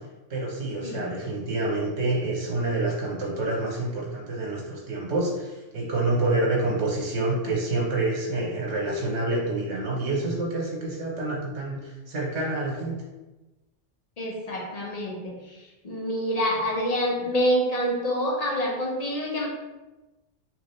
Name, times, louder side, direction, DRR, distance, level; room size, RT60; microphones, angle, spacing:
voice 1, 0.3-12.9, right 2 dB, 65° right, -3 dB, 1.3 m, -27 dB
voice 2, 0.8-1.1 14.2-15.6 15.8-19.5, equal, 35° left, -2 dB, 0.9 m, -27 dB
4.7 x 2.9 x 3.2 m, 1.1 s
omnidirectional pair, 1.2 m